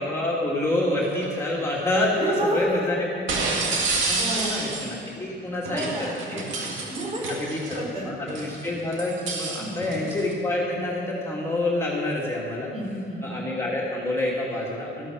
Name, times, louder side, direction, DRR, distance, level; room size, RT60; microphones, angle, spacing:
voice 1, 0.0-5.9 6.3-6.5 7.3-12.7 13.2-15.1, left 1 dB, 15° left, -5 dB, 2.8 m, -27 dB
sound 1, 1.1-1.4 3.3-5.0 5.7-7.9 8.3-10.3, right 3 dB, 75° right, 2.1 m, -29 dB
voice 2, 2.2-2.9 4.1-4.6 5.6-6.4 6.9-7.4 7.7-8.4 9.6-9.9 12.7-13.3, right 1 dB, 35° right, -3 dB, 4.3 m, -30 dB
13.5 x 11.5 x 6.6 m, 2.6 s
cardioid pair, 90°, 20 cm